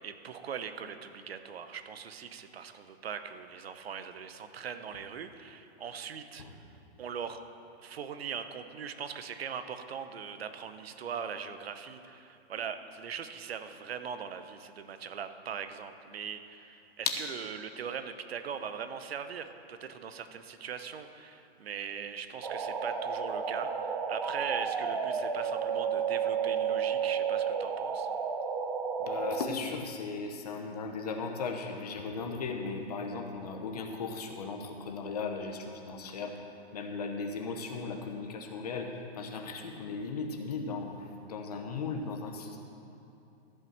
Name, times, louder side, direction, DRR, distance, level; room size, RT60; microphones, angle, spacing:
voice 1, 0.0-6.6 7.0-7.4 7.8-28.1, right 7 dB, 65° right, 9 dB, 0.9 m, -40 dB
sound 1, 22.4-29.5, right 6 dB, 40° right, 0.6 m, -32 dB
voice 2, 29.0-36.3 36.7-42.6, left 4 dB, 35° left, 3 dB, 0.9 m, -37 dB
14.5 x 5.6 x 7.3 m, 2.7 s
hypercardioid pair, 180°, 33 cm